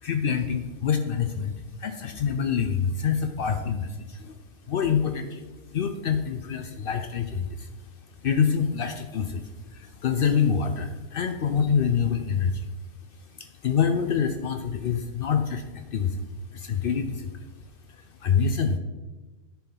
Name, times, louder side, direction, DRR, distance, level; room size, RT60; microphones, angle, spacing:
voice 1, 0.0-4.4 4.7-7.9 8.2-12.7 13.2-16.3 16.5-17.5 17.9-18.8, left 6 dB, 80° left, 7 dB, 0.5 m, -26 dB
10.5 x 4.3 x 4.0 m, 1.1 s
omnidirectional pair, 1.6 m